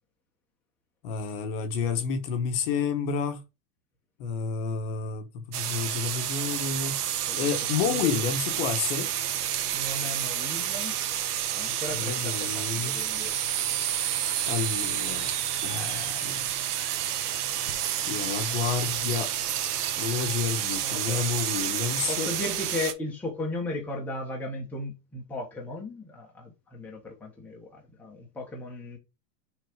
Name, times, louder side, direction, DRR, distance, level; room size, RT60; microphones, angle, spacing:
voice 1, 1.0-3.4 4.2-7.0 7.3-9.1 11.9-13.0 14.5-15.3 15.6-16.4 18.1-19.3 20.0-22.3, left 6 dB, 35° left, 1.2 m, -30 dB
sound 1, 5.5-22.9, right 10 dB, 65° right, 1.5 m, -29 dB
voice 2, 9.7-11.0 11.5-13.3 20.8-21.2 22.1-29.0, left 2 dB, 5° left, 1.1 m, -36 dB
6.4 x 4.1 x 5.0 m
supercardioid pair, 175°, 49 cm